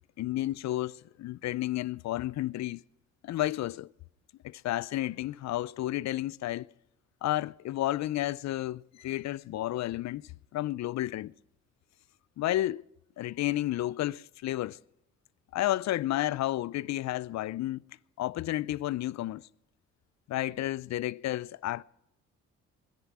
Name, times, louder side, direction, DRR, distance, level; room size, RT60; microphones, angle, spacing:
voice 1, 0.2-2.8 3.2-3.9 4.4-6.7 7.2-11.3 12.4-12.8 13.2-14.8 15.5-17.8 18.2-19.4 20.3-21.8, left 15 dB, 65° left, 0.5 m, -31 dB
20.5 x 10.5 x 6.1 m
cardioid pair, 90°, 30 cm